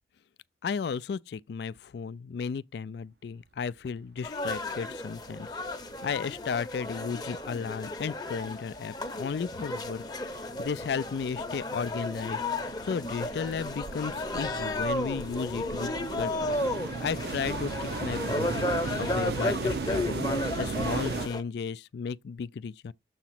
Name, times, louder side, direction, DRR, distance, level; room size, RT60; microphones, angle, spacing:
voice 1, 0.6-5.5 6.0-10.0 10.6-16.6 17.0-18.7 19.0-20.2 20.6-22.9, left 6 dB, 60° left, 0.3 m, -34 dB
sound 1, 4.2-21.4, left 2 dB, 20° left, 0.7 m, -33 dB
sound 2, 4.6-4.7 5.0-6.0 6.3-21.3, right 4 dB, 55° right, 0.5 m, -37 dB
7.1 x 2.9 x 5.8 m
head